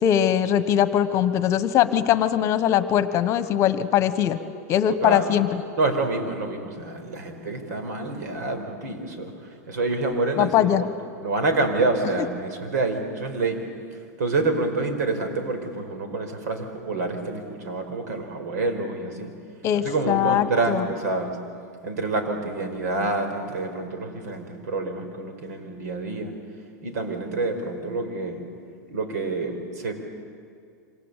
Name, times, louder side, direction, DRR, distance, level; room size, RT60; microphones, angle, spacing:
voice 1, 0.0-4.4 4.7-5.6 10.4-10.8 19.6-20.9, left 10 dB, 35° left, 12 dB, 1.3 m, -21 dB
voice 2, 5.0-5.3 5.8-9.3 9.7-10.9 11.2-13.6 14.2-19.3 19.8-21.3 21.8-26.3 26.8-28.4 28.9-29.9, right 3 dB, 80° right, 6 dB, 5.1 m, -27 dB
27.5 x 26.0 x 8.3 m, 2.3 s
supercardioid pair, 145°, 9 cm